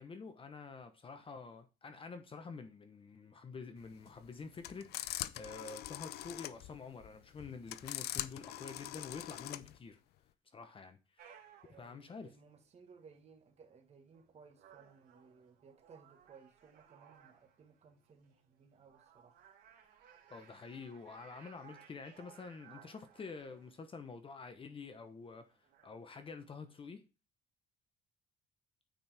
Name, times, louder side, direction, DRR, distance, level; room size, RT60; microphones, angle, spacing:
voice 1, 0.0-10.0 10.5-11.4 11.8-12.3 20.3-25.5 25.8-27.0, left 4 dB, 30° left, 1.0 m, -48 dB
sound 1, 3.8-9.8, left 14 dB, 75° left, 0.5 m, -43 dB
sound 2, 11.2-26.8, right 8 dB, 75° right, 3.2 m, -63 dB
voice 2, 11.6-19.4, right 5 dB, 40° right, 1.6 m, -61 dB
9.1 x 4.5 x 3.5 m
cardioid pair, 110°, 17 cm